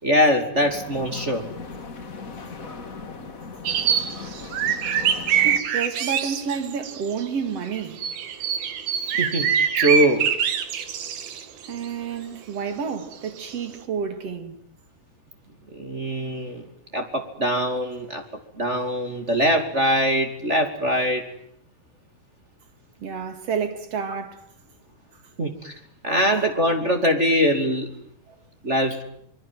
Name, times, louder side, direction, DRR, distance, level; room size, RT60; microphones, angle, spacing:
voice 1, 0.0-1.4 9.2-10.3 15.7-16.6 16.9-18.2 18.6-21.3 25.4-27.9 28.6-29.0, equal, 20° right, 2.1 m, -22 dB
sound 1, 0.5-5.6, left 4 dB, 45° left, 1.1 m, -38 dB
sound 2, 3.7-7.2 7.7-11.9 13.1-13.2 13.5-13.8, right 8 dB, 60° right, 3.6 m, -24 dB
voice 2, 5.4-8.0 11.7-14.6 23.0-24.5 28.3-28.4, right 6 dB, 40° right, 3.0 m, -30 dB
26.0 x 22.0 x 9.3 m
omnidirectional pair, 5.2 m